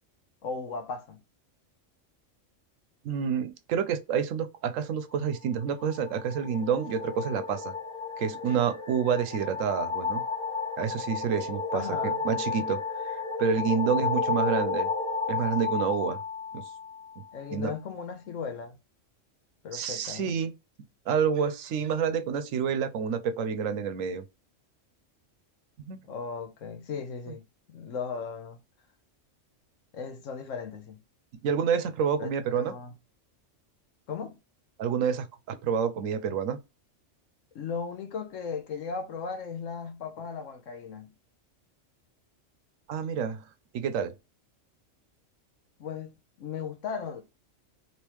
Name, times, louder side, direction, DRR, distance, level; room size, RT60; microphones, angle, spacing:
voice 1, 0.4-1.2 11.7-12.2 17.3-18.8 19.6-20.4 26.0-28.6 29.9-31.0 32.2-32.9 34.1-34.4 37.5-41.1 45.8-47.2, left 5 dB, 80° left, 1.2 m, -37 dB
voice 2, 3.0-7.7 8.2-10.2 10.8-14.9 15.3-16.2 16.5-16.6 17.5-17.7 19.7-20.5 21.1-24.2 25.8-26.0 31.4-32.7 34.8-36.6 42.9-43.4 43.7-44.1, right 7 dB, 90° right, 1.0 m, -28 dB
sound 1, 5.7-17.1, left 4 dB, 50° left, 1.1 m, -32 dB
3.5 x 2.8 x 3.0 m
omnidirectional pair, 1.3 m